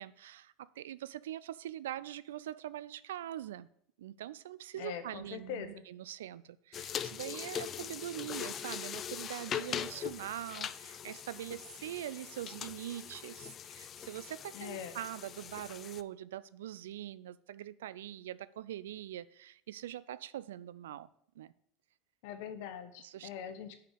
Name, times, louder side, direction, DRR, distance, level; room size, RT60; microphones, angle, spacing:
voice 1, 0.0-3.7 4.0-21.1 21.4-21.5 23.0-23.3, right 12 dB, 80° right, 0.3 m, -43 dB
voice 2, 4.8-5.8 14.5-15.0 22.2-23.8, left 8 dB, 70° left, 0.9 m, -42 dB
sound 1, 6.7-16.0, left 9 dB, 40° left, 0.3 m, -41 dB
6.1 x 4.9 x 6.4 m
hypercardioid pair, 85°, 0 cm